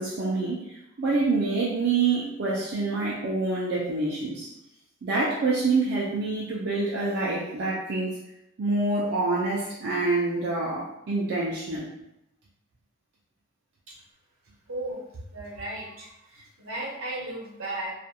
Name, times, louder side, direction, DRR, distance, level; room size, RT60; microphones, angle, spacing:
voice 1, 0.0-4.5 5.0-8.2 8.6-11.9, right 3 dB, 55° right, -6 dB, 0.4 m, -26 dB
voice 2, 14.7-17.9, right 1 dB, 75° right, -3 dB, 0.8 m, -35 dB
2.4 x 2.2 x 2.7 m, 0.85 s
head